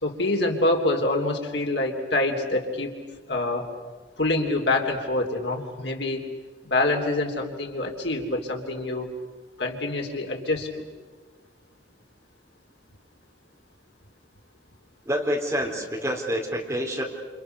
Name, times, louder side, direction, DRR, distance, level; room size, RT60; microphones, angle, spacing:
voice 1, 0.0-2.9 3.3-3.7 4.2-6.2 6.7-9.1 9.6-10.8, left 2 dB, 75° left, 3 dB, 3.6 m, -26 dB
voice 2, 15.1-17.0, equal, 15° right, -1 dB, 4.5 m, -27 dB
29.0 x 28.5 x 6.8 m, 1.4 s
head